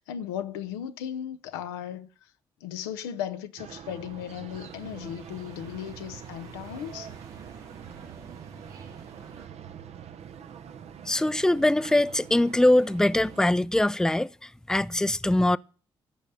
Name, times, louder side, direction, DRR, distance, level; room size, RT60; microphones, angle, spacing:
voice 1, 0.0-2.3 2.6-7.1, left 10 dB, 85° left, 0.7 m, -36 dB
sound 1, 3.6-13.5, right 8 dB, 65° right, 0.8 m, -45 dB
sound 2, 4.5-9.5, right 5 dB, 80° right, 3.0 m, -49 dB
voice 2, 11.1-14.3 14.7-15.6, left 1 dB, 5° left, 0.5 m, -22 dB
14.0 x 5.4 x 9.0 m
hypercardioid pair, 40°, 12 cm